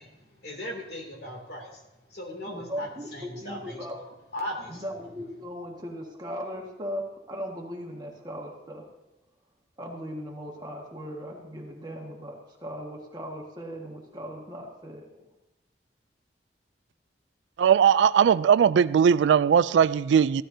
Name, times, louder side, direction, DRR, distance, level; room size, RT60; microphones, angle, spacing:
voice 1, 0.0-4.8, left 1 dB, 60° left, 2.7 m, -39 dB
voice 2, 2.5-4.0 4.7-8.9 9.8-15.1, equal, 25° right, 1.7 m, -38 dB
voice 3, 17.6-20.4, right 7 dB, 85° right, 0.3 m, -19 dB
15.0 x 12.5 x 2.8 m
head